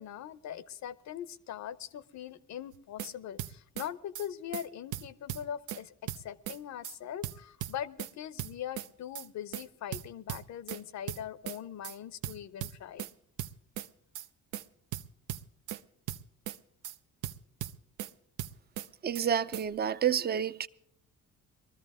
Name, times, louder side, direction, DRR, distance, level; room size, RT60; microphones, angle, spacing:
voice 1, 0.0-13.1, left 10 dB, 65° left, 0.7 m, -41 dB
sound 1, 2.7-3.1 3.4-3.9 4.1-4.3 4.5-4.6 4.9-5.8 6.1-6.6 6.8-7.0 7.2-8.1 8.4-8.9 9.1-9.3 9.5-9.6 9.9-10.8 11.1-11.6 11.8-12.0 12.2-13.1 13.4-13.9 14.1-14.3 14.5-14.6 14.9-15.8 16.1-16.6 16.8-17.0 17.2-18.1 18.4-18.9 19.1-19.3 19.5-19.6, right 12 dB, 90° right, 0.6 m, -38 dB
voice 2, 19.0-20.7, right 8 dB, 35° right, 0.5 m, -29 dB
21.5 x 13.5 x 3.6 m
cardioid pair, 90°, 30 cm